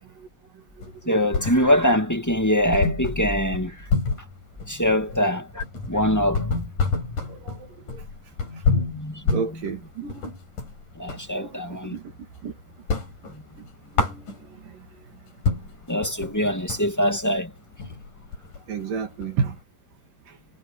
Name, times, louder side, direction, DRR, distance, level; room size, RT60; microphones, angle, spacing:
sound 1, 0.8-2.0 2.3-2.4 2.7-11.3 11.7-12.5 12.7-14.7 15.2-15.3 15.4-19.6, left 4 dB, 60° left, 6.4 m, -28 dB
voice 1, 1.0-3.9 4.7-7.2 8.9-9.4 10.9-11.9 13.3-13.4 15.9-17.5, equal, 5° left, 1.5 m, -24 dB
voice 2, 7.3-8.0 9.3-10.2 11.3-12.0 12.4-12.5 14.1-14.2 18.7-19.6, right 5 dB, 65° right, 4.2 m, -31 dB
omnidirectional pair, 4.2 m